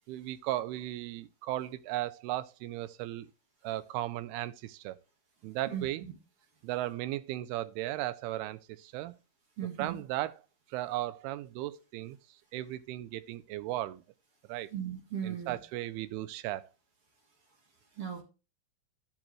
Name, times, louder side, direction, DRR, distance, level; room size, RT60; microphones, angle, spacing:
voice 1, 0.1-3.3 3.6-5.0 5.4-6.0 6.6-9.1 9.8-10.4 10.7-12.2 12.5-14.0 14.5-14.7 15.2-16.7, right 15 dB, 85° right, 2.5 m, -36 dB
voice 2, 9.6-10.0 14.7-15.6 18.0-18.2, right 9 dB, 50° right, 1.8 m, -36 dB
10.0 x 6.4 x 3.1 m
omnidirectional pair, 4.5 m